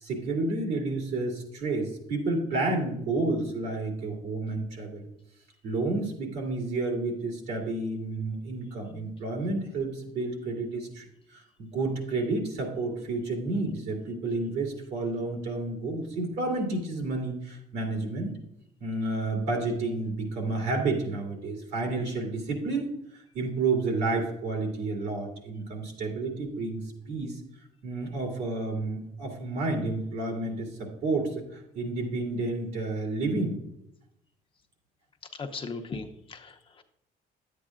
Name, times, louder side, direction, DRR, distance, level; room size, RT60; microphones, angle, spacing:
voice 1, 0.0-5.1 5.6-18.3 18.8-26.8 27.1-27.4 27.8-33.6, right 3 dB, 75° right, 1 dB, 2.5 m, -30 dB
voice 2, 35.3-36.8, left 4 dB, 30° left, 5 dB, 0.8 m, -38 dB
10.5 x 8.4 x 2.5 m, 0.79 s
cardioid pair, 110°, 17 cm